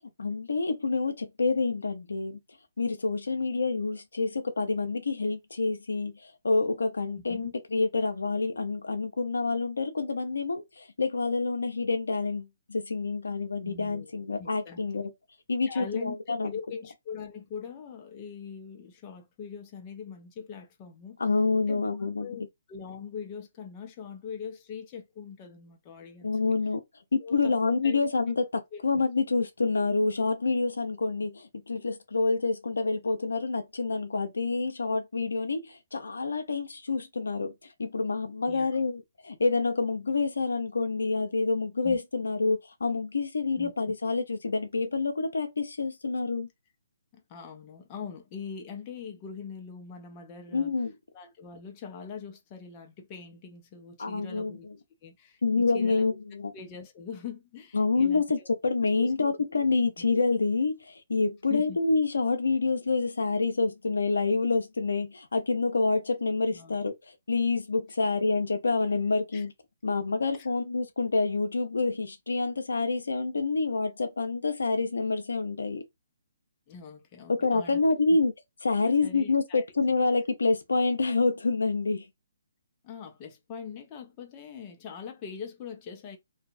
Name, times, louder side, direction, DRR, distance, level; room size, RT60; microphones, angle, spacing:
voice 1, 0.2-2.4 2.8-15.1 15.5-16.5 21.2-22.3 26.2-26.8 27.1-37.5 37.8-46.5 50.5-50.9 54.0-54.5 55.4-56.5 57.7-58.4 58.6-66.9 67.3-69.5 69.8-75.8 77.4-78.3 78.6-82.0, left 3 dB, 80° left, 0.6 m, -27 dB
voice 2, 7.2-7.5 13.5-14.8 15.7-21.2 21.7-26.3 27.2-28.0 28.3-28.4 28.7-28.8 38.4-38.7 41.8-42.0 43.6-43.7 47.1-50.7 51.1-54.7 55.0-56.2 56.5-58.5 59.0-59.5 60.0-60.1 61.5-61.8 66.5-66.8 69.3-69.4 70.3-70.5 76.7-78.2 79.0-79.6 82.8-86.2, left 6 dB, 30° left, 0.6 m, -42 dB
2.7 x 2.3 x 2.5 m
figure-of-eight pair, 140°, 0 cm